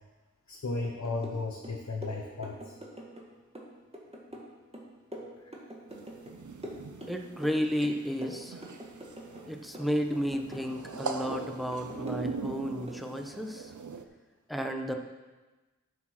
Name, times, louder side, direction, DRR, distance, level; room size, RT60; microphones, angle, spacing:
voice 1, 0.5-2.8 5.4-5.5, left 3 dB, 65° left, 1 dB, 1.0 m, -35 dB
sound 1, 0.8-1.4 1.6-3.3 3.6-6.4 6.6-7.6 7.8-9.5 9.7-10.7 10.9-12.6 12.9-13.1, equal, 20° right, 1.9 m, -44 dB
sound 2, 5.9-14.0, right 4 dB, 80° right, 0.7 m, -41 dB
voice 2, 7.1-8.6 9.5-13.7 14.5-14.9, equal, ahead, 4 dB, 1.1 m, -32 dB
9.2 x 6.4 x 6.1 m, 1.2 s
wide cardioid pair, 40°, 29 cm